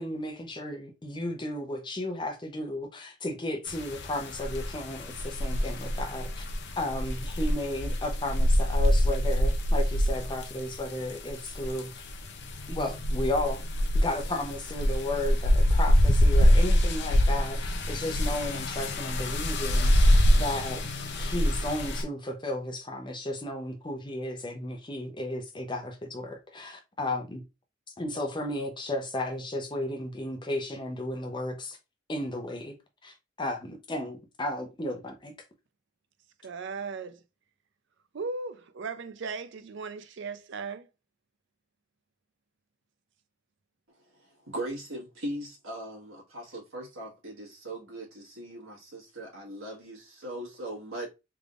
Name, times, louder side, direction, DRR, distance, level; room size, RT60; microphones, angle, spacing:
voice 1, 0.0-6.4 6.8-12.0 12.7-13.6 13.9-20.9 21.1-27.4 28.0-31.8 32.1-32.7 33.0-35.3, left 1 dB, 25° left, 0.7 m, -34 dB
sound 1, 3.7-22.0, equal, 55° left, 0.6 m, -25 dB
voice 2, 36.4-37.2 38.1-40.9, right 4 dB, 60° right, 0.5 m, -37 dB
voice 3, 44.0-51.1, right 1 dB, 85° right, 1.5 m, -39 dB
3.5 x 3.4 x 2.4 m
head